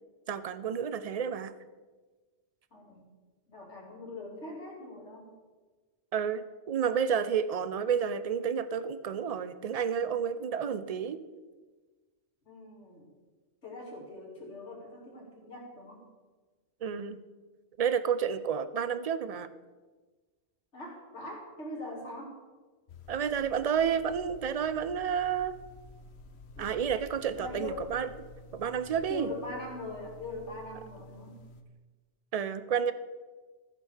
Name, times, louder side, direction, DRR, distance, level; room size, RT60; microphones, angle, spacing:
voice 1, 0.3-1.5 6.1-11.2 16.8-17.2 17.8-19.5 23.1-25.6 26.6-28.1 28.5-29.3 32.3-32.9, right 7 dB, 45° right, 13 dB, 0.5 m, -30 dB
voice 2, 2.7-3.0 3.5-5.3 12.5-13.1 13.6-16.0 20.7-22.4 27.4-27.9 29.1-31.4, left 2 dB, 90° left, -3 dB, 3.2 m, -42 dB
sound 1, 22.9-31.6, left 2 dB, 70° left, 1.1 m, -51 dB
15.0 x 5.4 x 6.4 m, 1.3 s
omnidirectional pair, 1.2 m